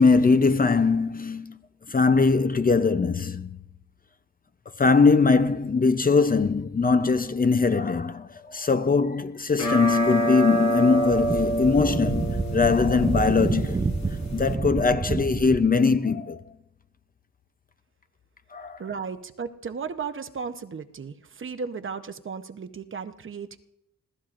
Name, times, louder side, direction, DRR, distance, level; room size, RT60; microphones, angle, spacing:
voice 1, 0.0-1.6 1.9-3.6 4.8-13.9 14.3-16.4 18.5-18.8, left 4 dB, 30° left, 0.6 m, -21 dB
sound 1, 9.5-14.6, right 1 dB, 65° left, 2.3 m, -28 dB
Wind, 11.0-15.7, right 3 dB, 15° right, 0.5 m, -28 dB
voice 2, 18.8-23.6, right 5 dB, 45° right, 0.9 m, -35 dB
26.5 x 16.5 x 2.5 m
wide cardioid pair, 160°, 30 cm